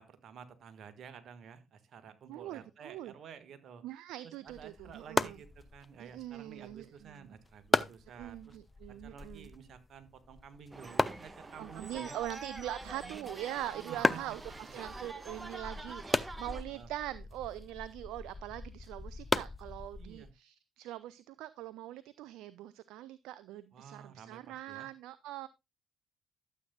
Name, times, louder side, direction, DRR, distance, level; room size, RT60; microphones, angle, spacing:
voice 1, 0.0-3.8 4.2-8.6 8.9-12.2 12.8-13.3 13.7-14.5 14.9-15.1 16.6-16.9 20.0-20.3 23.7-24.9, right 7 dB, 60° right, 10 dB, 1.6 m, -52 dB
voice 2, 2.3-3.1 3.8-5.4 6.0-7.3 8.2-9.5 11.6-25.5, right 14 dB, 75° right, 16 dB, 0.4 m, -42 dB
sound 1, 4.5-20.3, left 3 dB, 25° left, 0.7 m, -37 dB
sound 2, 10.7-16.6, right 3 dB, 25° right, 1.5 m, -46 dB
12.5 x 8.1 x 2.3 m, 0.22 s
hypercardioid pair, 50°, 0 cm